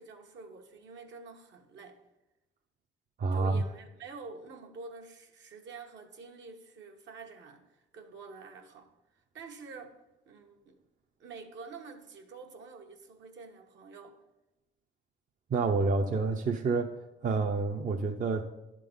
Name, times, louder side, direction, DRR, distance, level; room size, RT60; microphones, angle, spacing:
voice 1, 0.0-2.0 3.3-10.0 10.2-10.8 11.2-14.2, right 4 dB, 70° right, 3 dB, 1.1 m, -48 dB
voice 2, 3.2-3.6 15.5-16.9 17.2-18.4, right 4 dB, 40° right, 3 dB, 0.6 m, -28 dB
11.0 x 3.8 x 5.4 m, 0.97 s
cardioid pair, 90°, 20 cm